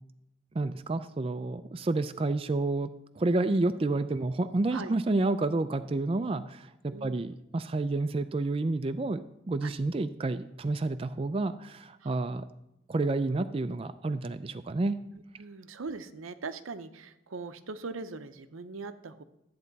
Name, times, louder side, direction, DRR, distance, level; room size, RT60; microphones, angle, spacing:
voice 1, 0.6-2.9 3.2-12.4 12.9-15.0, right 2 dB, 30° right, 10 dB, 0.3 m, -29 dB
voice 2, 6.9-7.2 9.6-9.7 12.0-12.1 15.1-19.2, right 4 dB, 85° right, 11 dB, 0.7 m, -41 dB
13.0 x 8.5 x 4.0 m, 0.89 s
head